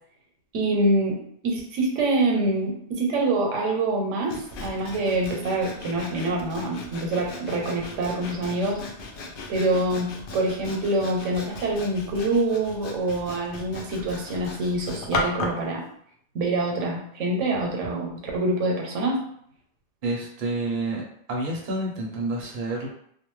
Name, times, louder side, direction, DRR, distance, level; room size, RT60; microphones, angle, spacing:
voice 1, 0.5-1.2 1.4-8.8 9.5-15.8 16.3-19.2, right 2 dB, 85° right, 0 dB, 1.0 m, -25 dB
Sawing, 4.3-15.7, left 2 dB, 60° left, 0.6 m, -36 dB
voice 2, 20.0-21.0 21.3-22.9, right 2 dB, 50° right, -1 dB, 0.8 m, -28 dB
2.4 x 2.2 x 3.0 m, 0.67 s
omnidirectional pair, 1.2 m